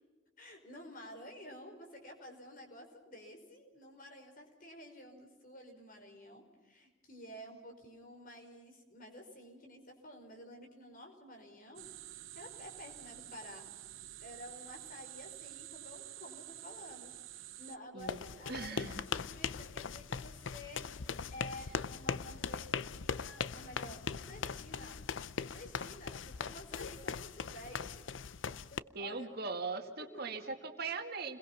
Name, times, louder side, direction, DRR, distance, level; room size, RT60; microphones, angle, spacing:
voice 1, 0.4-11.9 12.3-13.6 14.2-17.1 17.4-25.0 25.4-28.1 28.4-29.3 30.0-30.4, left 1 dB, 45° left, 3 dB, 5.2 m, -51 dB
sound 1, 11.8-17.8, right 14 dB, 90° right, 0.9 m, -49 dB
sound 2, 18.0-28.8, left 6 dB, 75° left, 0.7 m, -40 dB
voice 2, 18.5-19.0 28.9-31.4, right 4 dB, 55° right, 4 dB, 2.2 m, -40 dB
29.5 x 22.0 x 5.8 m, 1.3 s
head